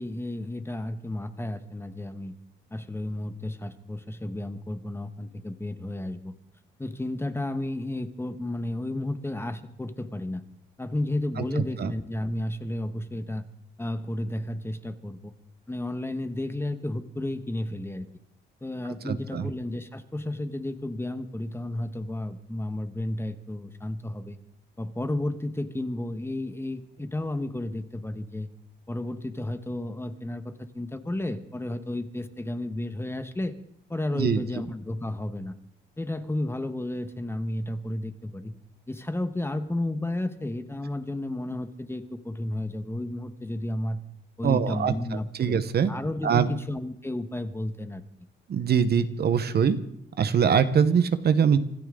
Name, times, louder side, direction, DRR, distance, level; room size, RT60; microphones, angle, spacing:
voice 1, 0.0-2.3 2.7-6.3 6.8-10.4 10.8-13.5 13.8-15.3 15.7-18.1 18.6-24.4 24.8-28.5 28.9-33.5 33.9-35.5 36.0-38.5 38.9-44.0 44.4-45.6 45.9-48.0, left 1 dB, 10° left, 9 dB, 1.4 m, -32 dB
voice 2, 19.0-19.5 34.1-34.4 44.4-44.9 45.4-45.9 46.2-46.5 48.5-49.8 50.2-51.6, right 7 dB, 55° right, 11 dB, 1.2 m, -23 dB
25.0 x 13.5 x 3.9 m, 0.73 s
cardioid pair, 90°, 20 cm